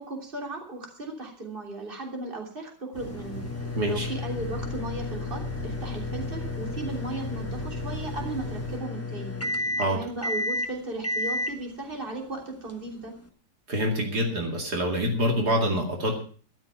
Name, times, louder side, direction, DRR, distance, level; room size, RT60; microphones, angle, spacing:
voice 1, 0.0-3.5 3.8-9.4 9.9-13.1, right 2 dB, 30° right, 1 dB, 3.4 m, -36 dB
sound 1, 2.9-8.8, right 3 dB, 85° right, 7.6 m, -39 dB
sound 2, 3.0-13.3, left 2 dB, 10° left, 1.1 m, -33 dB
voice 2, 3.8-4.1 9.8-10.0 13.7-16.2, equal, 70° right, 2 dB, 3.0 m, -26 dB
13.0 x 12.5 x 5.7 m, 0.42 s
omnidirectional pair, 1.8 m